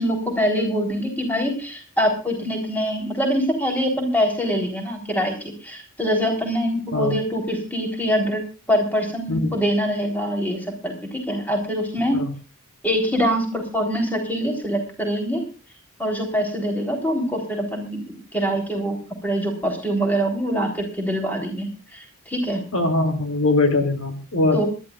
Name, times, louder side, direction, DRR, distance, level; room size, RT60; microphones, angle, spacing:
voice 1, 0.0-8.4 8.7-12.2 12.8-15.4 16.0-19.0 19.2-22.6 24.5-24.7, equal, 10° left, 3 dB, 3.8 m, -24 dB
voice 2, 22.7-24.7, left 2 dB, 65° left, 5 dB, 3.1 m, -21 dB
26.0 x 12.5 x 2.5 m, 0.34 s
head